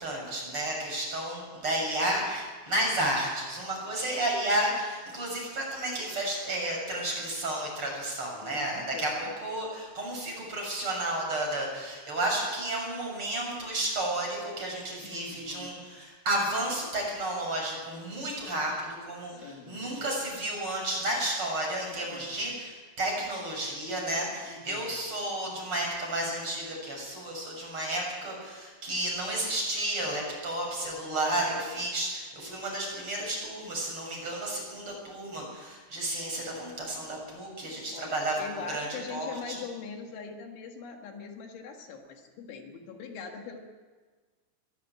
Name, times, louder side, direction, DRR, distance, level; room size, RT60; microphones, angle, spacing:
voice 1, 0.0-39.6, right 1 dB, 25° right, 0 dB, 7.4 m, -32 dB
voice 2, 8.4-9.3 15.0-15.7 19.3-20.0 22.1-22.4 24.5-24.8 37.9-43.6, left 5 dB, 75° left, 3 dB, 4.2 m, -42 dB
22.5 x 14.5 x 9.8 m, 1.4 s
omnidirectional pair, 5.6 m